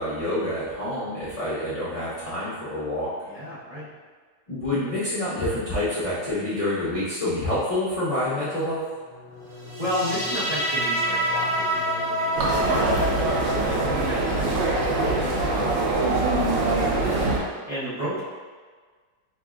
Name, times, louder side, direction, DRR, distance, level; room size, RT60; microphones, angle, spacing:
voice 1, 0.0-3.1 4.5-8.8 17.0-17.3, left 1 dB, 60° left, -12 dB, 0.3 m, -27 dB
voice 2, 3.3-3.9 9.8-13.1 13.4-16.9 17.7-18.2, equal, 30° right, -13 dB, 0.8 m, -33 dB
sound 1, 8.9-15.9, left 3 dB, 80° left, 1.2 m, -39 dB
sound 2, 9.7-16.7, equal, 65° right, 1.1 m, -29 dB
sound 3, 12.4-17.4, right 2 dB, 85° right, 1.4 m, -23 dB
5.1 x 2.5 x 2.4 m, 1.5 s
omnidirectional pair, 1.9 m